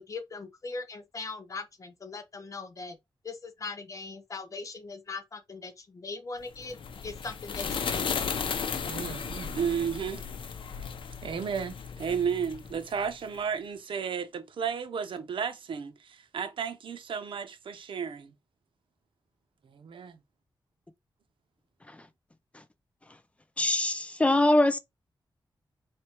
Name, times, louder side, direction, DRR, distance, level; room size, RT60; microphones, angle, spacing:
voice 1, 0.0-3.0 3.2-6.8 7.0-8.4, left 4 dB, 40° left, 0.7 m, -40 dB
sound 1, 6.5-13.2, left 6 dB, 85° left, 0.7 m, -35 dB
voice 2, 8.8-10.3 11.2-18.3 19.8-20.2, right 7 dB, 85° right, 0.7 m, -33 dB
voice 3, 23.6-24.8, left 1 dB, 15° left, 0.4 m, -23 dB
4.3 x 3.3 x 2.9 m
wide cardioid pair, 170°, 8 cm